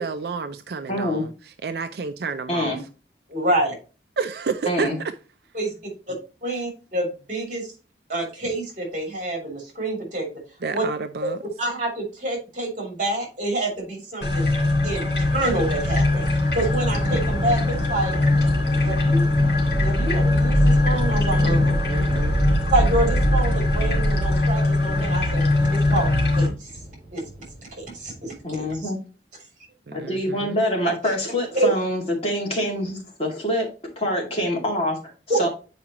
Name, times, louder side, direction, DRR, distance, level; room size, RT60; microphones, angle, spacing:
voice 1, 0.0-2.9 4.2-5.1 6.6-6.7 10.6-11.4 21.8-22.4 29.9-30.6, right 4 dB, 60° right, 0.4 m, -30 dB
voice 2, 0.9-1.2 2.5-2.8 4.7-4.9 28.4-29.0 29.9-33.7 34.0-35.5, left 1 dB, 35° left, 2.2 m, -25 dB
voice 3, 3.3-3.8 5.5-5.7 6.1-6.2 6.4-7.7 8.1-10.3 10.7-10.8 11.2-11.3 11.6-14.5 14.8-18.2 18.8-19.3 19.8-21.8 22.7-25.5 25.7-26.7 27.1-27.2 27.8-28.9 30.8-31.1 31.5-31.7 35.3-35.4, right 2 dB, 45° right, 3.1 m, -27 dB
sound 1, 14.2-26.5, left 1 dB, 70° left, 2.9 m, -21 dB
Thunder / Rain, 16.9-28.8, right 1 dB, 20° right, 3.8 m, -35 dB
8.7 x 4.8 x 2.9 m
head